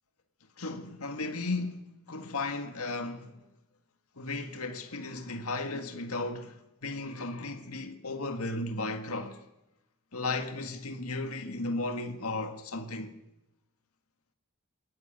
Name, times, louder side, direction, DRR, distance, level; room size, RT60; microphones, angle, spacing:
voice 1, 0.6-3.4 4.2-6.5 6.8-9.4 10.1-13.1, left 2 dB, 80° left, 1.8 m, -35 dB
21.5 x 18.5 x 9.0 m
head